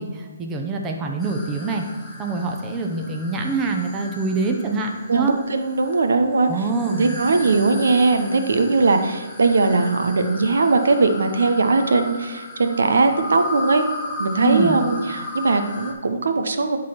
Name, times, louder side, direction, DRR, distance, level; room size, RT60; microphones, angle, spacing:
voice 1, 0.0-1.8 2.2-5.4 6.5-7.4 14.4-14.8, right 3 dB, 15° right, 2 dB, 0.9 m, -25 dB
sound 1, 1.2-15.9, left 2 dB, 5° left, 1.7 m, -36 dB
voice 2, 5.1-6.5 6.9-13.8 14.2-16.8, right 3 dB, 80° right, 7 dB, 0.9 m, -19 dB
11.0 x 4.0 x 5.9 m, 1.3 s
hypercardioid pair, 155°, 0 cm